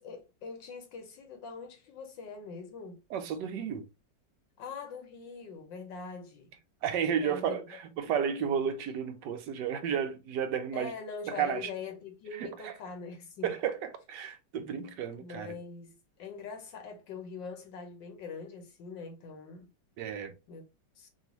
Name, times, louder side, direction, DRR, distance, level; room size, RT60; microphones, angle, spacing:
voice 1, 0.0-3.0 4.6-6.5 7.2-7.7 10.7-13.6 15.2-19.7 20.5-20.6 21.0-21.1, left 5 dB, 85° left, 1.7 m, -43 dB
voice 2, 3.1-3.8 6.8-10.9 11.3-11.7 12.4-12.7 13.4-15.6 20.0-20.3, right 8 dB, 75° right, 1.3 m, -32 dB
5.1 x 2.4 x 2.9 m
omnidirectional pair, 2.0 m